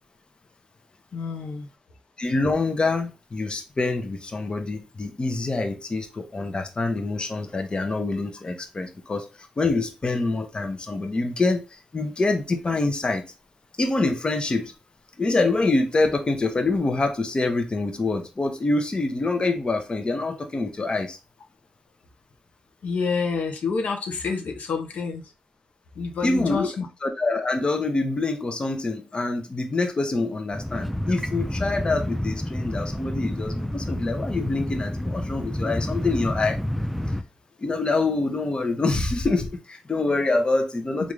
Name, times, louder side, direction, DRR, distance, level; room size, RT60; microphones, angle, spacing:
voice 1, 1.1-1.7 22.8-25.2 26.0-26.9, left 5 dB, 85° left, 0.7 m, -28 dB
voice 2, 2.2-9.3 9.6-13.2 13.8-14.7 15.2-21.2 26.2-26.7 27.0-36.6 37.6-41.1, left 3 dB, 40° left, 0.7 m, -25 dB
sound 1, 30.5-37.2, left 1 dB, ahead, 0.4 m, -29 dB
3.6 x 2.5 x 3.1 m
cardioid pair, 65°, 2 cm